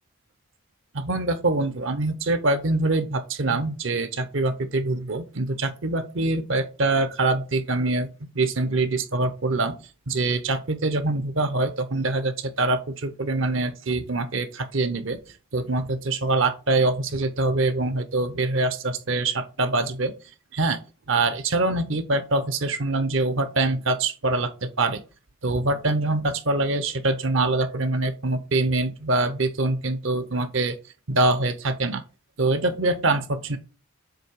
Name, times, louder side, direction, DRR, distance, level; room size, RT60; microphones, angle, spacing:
voice 1, 0.9-8.1 8.4-9.8 10.1-15.2 15.5-20.1 20.5-20.8 21.1-25.0 25.4-30.7 31.1-32.0 32.4-33.6, right 2 dB, 65° right, 0.8 m, -24 dB
7.6 x 2.8 x 4.7 m
head